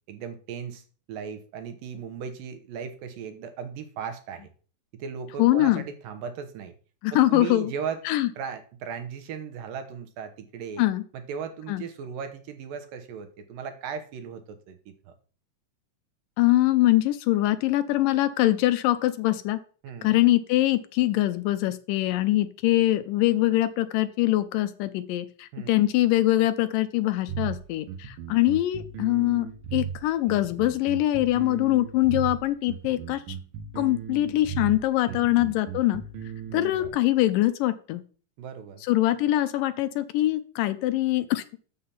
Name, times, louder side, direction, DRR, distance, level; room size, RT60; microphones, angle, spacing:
voice 1, 0.1-4.5 4.9-6.7 7.1-8.0 8.4-10.8 11.1-15.1 19.8-20.2 25.5-25.8 35.0-35.4 36.5-37.0 38.4-38.8, right 7 dB, 85° right, 8 dB, 2.7 m, -37 dB
voice 2, 5.4-5.9 7.0-7.7 8.1-8.3 10.8-11.0 11.7-11.8 16.4-19.6 20.0-33.4 33.8-36.0 36.5-38.0 38.8-41.4, left 15 dB, 80° left, 11 dB, 2.2 m, -23 dB
sound 1, 27.3-36.9, right 8 dB, 70° right, 2.5 m, -36 dB
7.1 x 6.6 x 5.7 m, 0.40 s
omnidirectional pair, 3.9 m